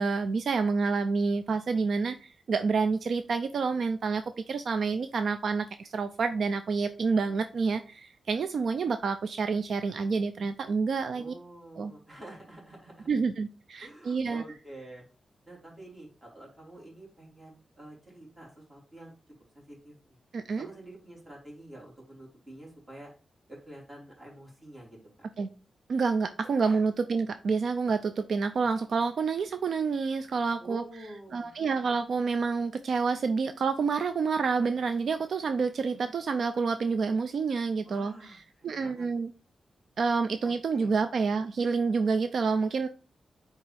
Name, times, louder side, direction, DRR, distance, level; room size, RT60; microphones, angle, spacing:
voice 1, 0.0-11.3 11.8-11.9 13.1-14.4 20.3-20.7 25.4-25.5 25.9-30.8 31.3-38.4 38.6-39.3 40.0-42.9, right 4 dB, 65° right, 0.4 m, -28 dB
voice 2, 11.1-13.1 13.8-15.0 15.5-19.1 19.5-20.2 20.6-23.1 23.5-25.0 26.4-26.8 30.6-31.5 37.8-39.1 40.4-40.9, right 1 dB, 20° right, 3.3 m, -48 dB
8.6 x 3.5 x 3.4 m
wide cardioid pair, 140°, 0 cm